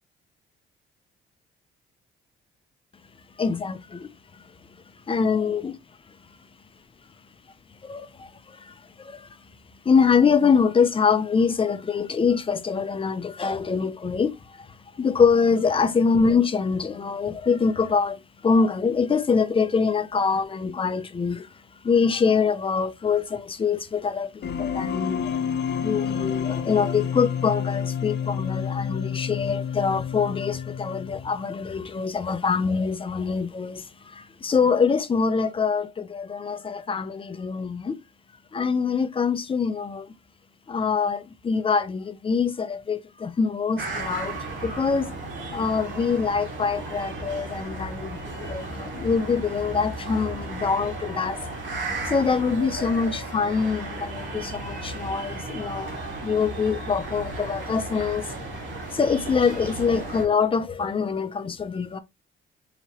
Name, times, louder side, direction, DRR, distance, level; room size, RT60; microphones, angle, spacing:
voice 1, 3.4-4.1 5.1-5.8 7.8-9.3 9.9-14.7 15.0-21.5 21.8-25.3 25.8-38.0 38.5-40.1 40.7-45.1 45.5-51.4 52.0-55.9 56.2-58.3 58.9-62.0, left 5 dB, 25° left, 0.5 m, -24 dB
sound 1, 24.4-31.4, left 7 dB, 60° left, 0.8 m, -29 dB
sound 2, 43.8-60.3, right 2 dB, 65° right, 1.7 m, -34 dB
4.4 x 2.9 x 2.9 m
cardioid pair, 90°, 20 cm